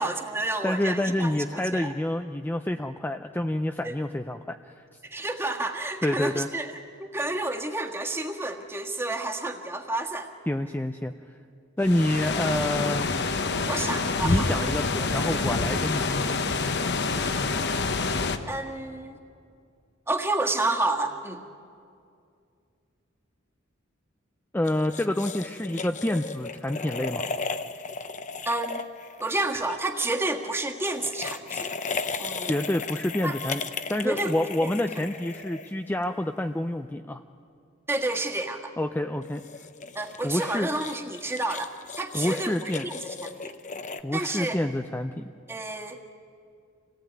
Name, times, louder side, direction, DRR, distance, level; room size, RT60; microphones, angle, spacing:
voice 1, 0.0-1.9 3.8-4.0 5.0-6.7 7.0-10.3 13.7-14.5 17.0-17.2 18.5-19.2 20.1-21.4 28.5-28.8 29.2-31.7 32.2-32.5 33.2-33.4 34.0-34.3 34.6-34.8 37.9-38.7 40.0-43.5 44.1-44.6 45.5-46.0, right 2 dB, 10° right, 3 dB, 1.7 m, -30 dB
voice 2, 0.6-4.6 6.0-6.5 10.5-11.1 11.8-13.1 14.2-16.4 24.5-27.2 32.4-33.6 33.9-37.2 38.8-39.4 40.2-40.7 42.1-42.9 44.0-45.3, left 1 dB, 10° left, 6 dB, 0.5 m, -28 dB
sound 1, 11.8-18.4, left 3 dB, 55° left, 1.2 m, -27 dB
sound 2, 24.6-29.8 30.8-36.0 39.2-44.0, left 4 dB, 40° left, 0.9 m, -36 dB
26.5 x 18.0 x 9.4 m, 2.4 s
head